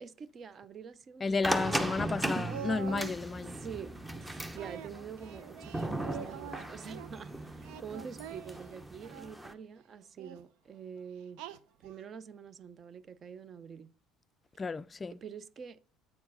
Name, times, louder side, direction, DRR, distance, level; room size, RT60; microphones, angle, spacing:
voice 1, 0.0-1.8 3.6-11.4 11.8-13.9 15.2-15.8, right 7 dB, 40° right, 0.6 m, -46 dB
voice 2, 1.2-3.6 14.6-15.1, left 4 dB, 25° left, 0.3 m, -32 dB
sound 1, 1.4-9.5, right 1 dB, 10° right, 0.8 m, -37 dB
Singing, 1.5-3.2 4.6-7.1 7.6-9.4 10.2-10.4 11.4-12.0, right 9 dB, 80° right, 0.6 m, -45 dB
8.5 x 4.5 x 5.4 m
supercardioid pair, 105°, 0 cm